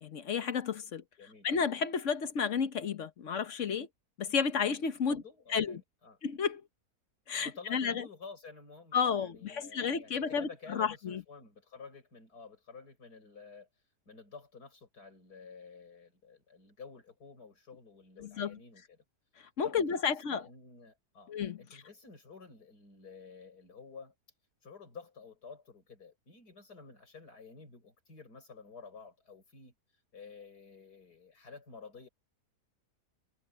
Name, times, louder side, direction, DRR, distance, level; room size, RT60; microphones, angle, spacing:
voice 1, 0.0-1.0 1.4-3.9 4.2-5.2 5.5-5.8 6.2-6.6 7.3-8.1 8.9-11.2 18.2-18.6 19.4-20.4 21.3-21.6, left 6 dB, 55° left, 1.3 m, -32 dB
voice 2, 5.1-6.2 7.4-13.7 14.1-19.0 19.6-24.1 24.6-29.7 30.1-32.1, left 5 dB, 80° left, 6.4 m, -51 dB
omnidirectional pair, 1.7 m